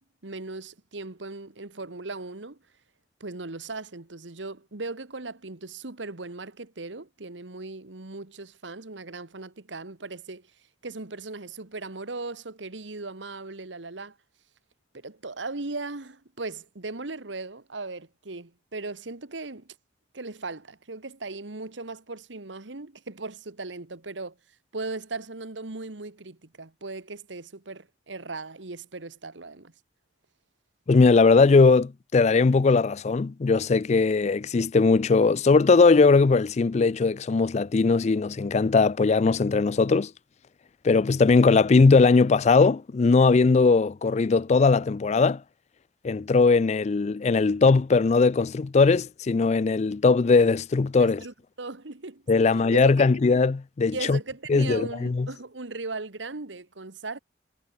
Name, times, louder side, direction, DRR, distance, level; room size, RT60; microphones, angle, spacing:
voice 1, 0.0-2.6 3.2-10.5 10.8-14.2 14.9-19.7 20.1-24.4 24.7-29.7 51.0-52.6 53.0-53.1 53.9-57.2, right 3 dB, 85° right, 1.6 m, -38 dB
voice 2, 30.9-40.1 40.8-45.4 46.0-51.2 52.3-54.2 54.5-55.3, left 4 dB, 40° left, 0.4 m, -20 dB
head